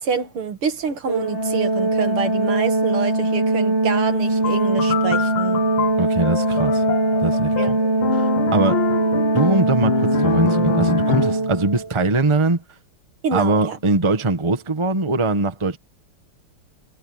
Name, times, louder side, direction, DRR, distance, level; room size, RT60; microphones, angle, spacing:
voice 1, 0.0-5.6 7.6-7.8 13.2-13.8, right 6 dB, 80° right, 2.9 m, -27 dB
Organ, 1.1-11.9, right 2 dB, 30° left, 2.8 m, -21 dB
sound 1, 4.4-11.5, left 10 dB, 75° left, 1.9 m, -26 dB
voice 2, 6.0-6.8 7.2-7.8 8.1-8.9 9.3-12.6 13.3-15.8, right 3 dB, 15° right, 1.2 m, -21 dB
omnidirectional pair, 2.4 m